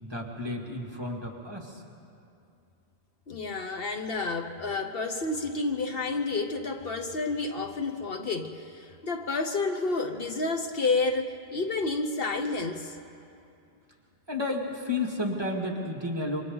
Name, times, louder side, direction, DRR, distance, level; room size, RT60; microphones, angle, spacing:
voice 1, 0.0-1.8 14.3-16.4, left 2 dB, 25° right, -2 dB, 2.2 m, -32 dB
voice 2, 3.3-13.0, left 3 dB, 60° left, 5 dB, 1.2 m, -30 dB
27.5 x 24.5 x 4.0 m, 2.6 s
omnidirectional pair, 1.1 m